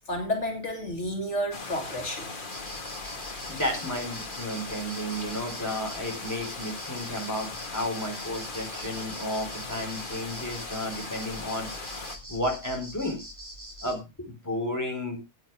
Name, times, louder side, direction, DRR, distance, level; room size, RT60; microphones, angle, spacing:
voice 1, 0.1-2.3, equal, 75° left, 2.8 m, -31 dB
sound 1, 1.5-12.2, left 3 dB, 45° left, 1.8 m, -39 dB
sound 2, 2.5-13.9, equal, 25° right, 4.8 m, -43 dB
voice 2, 3.5-11.7 12.3-13.2 13.8-15.2, left 1 dB, 15° left, 4.3 m, -32 dB
15.0 x 9.3 x 3.5 m
omnidirectional pair, 1.2 m